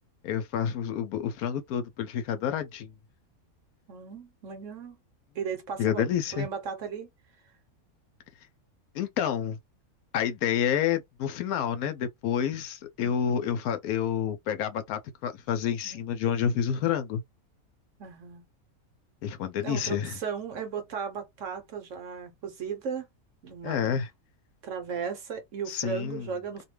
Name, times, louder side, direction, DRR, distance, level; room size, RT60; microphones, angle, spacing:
voice 1, 0.2-2.9 5.8-6.5 8.9-9.6 10.1-17.2 19.2-20.2 23.6-24.1 25.7-26.3, left 8 dB, 85° left, 1.1 m, -29 dB
voice 2, 3.9-5.0 5.3-7.1 13.0-13.2 15.8-16.0 18.0-18.4 19.6-23.1 23.4-24.0 24.6-26.6, right 6 dB, 60° right, 1.1 m, -36 dB
2.8 x 2.2 x 3.2 m
omnidirectional pair, 1.5 m